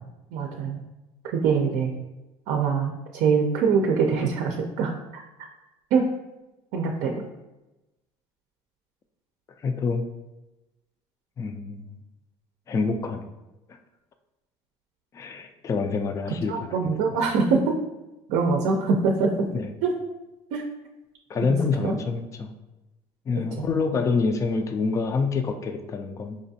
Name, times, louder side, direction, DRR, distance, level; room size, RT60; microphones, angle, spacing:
voice 1, 0.3-0.8 1.2-1.9 2.5-5.2 5.9-6.1 6.7-7.2 16.5-17.8 18.3-19.5 19.8-19.9 20.5-20.7 21.8-21.9 23.6-23.7, right 5 dB, 70° right, 2 dB, 0.5 m, -23 dB
voice 2, 9.6-10.1 11.4-11.9 12.7-13.2 15.1-16.8 17.1-17.2 19.5-19.7 21.3-22.5 23.3-26.4, left 4 dB, 25° left, 7 dB, 0.3 m, -27 dB
5.0 x 2.4 x 2.7 m, 1.0 s
supercardioid pair, 110°, 12 cm